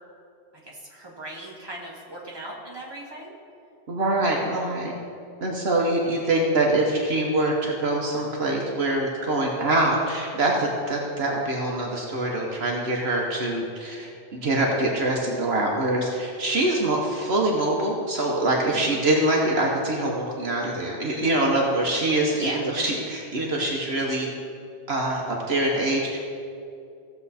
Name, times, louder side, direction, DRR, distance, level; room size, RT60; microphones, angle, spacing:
voice 1, 0.6-3.3 18.7-19.0 22.3-22.6, right 1 dB, 20° right, -4 dB, 2.0 m, -37 dB
voice 2, 3.9-4.9 5.4-24.3 24.9-26.2, right 2 dB, 65° right, -2 dB, 1.4 m, -24 dB
16.5 x 7.1 x 4.2 m, 2.5 s
omnidirectional pair, 1.1 m